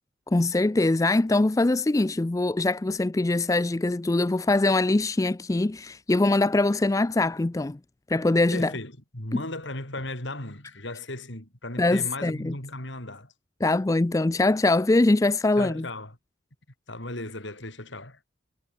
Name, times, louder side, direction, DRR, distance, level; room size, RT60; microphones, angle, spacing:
voice 1, 0.3-7.8 8.1-8.7 9.3-9.4 11.8-12.5 13.6-15.8, left 2 dB, 15° left, 0.3 m, -23 dB
voice 2, 8.5-13.3 15.6-16.2 16.9-18.2, left 2 dB, 60° left, 4.8 m, -36 dB
head